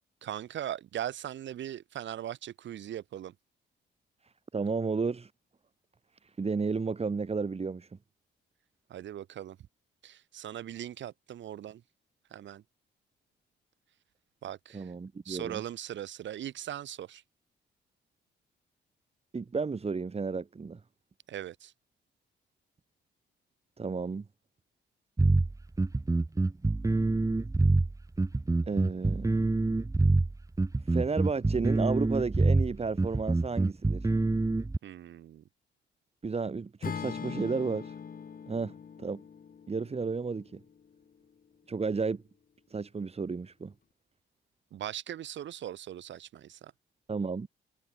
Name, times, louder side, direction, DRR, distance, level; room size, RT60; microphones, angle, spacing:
voice 1, 0.2-3.3 8.9-9.6 10.0-11.8 12.3-12.6 14.4-14.9 15.3-17.2 21.3-21.7 34.8-35.4 44.7-46.7, right 11 dB, 75° right, 5.4 m, -39 dB
voice 2, 4.5-5.3 6.4-7.9 14.7-15.6 19.3-20.8 23.8-24.2 28.7-29.4 30.9-34.1 36.2-38.0 38.5-38.7 39.0-39.2 39.7-40.6 41.7-42.2 42.7-43.7 47.1-47.5, right 4 dB, 30° right, 5.1 m, -32 dB
sound 1, 25.2-34.8, right 2 dB, 15° right, 2.4 m, -26 dB
Acoustic guitar / Strum, 36.8-41.0, left 6 dB, 50° left, 6.0 m, -41 dB
cardioid pair, 90°, 19 cm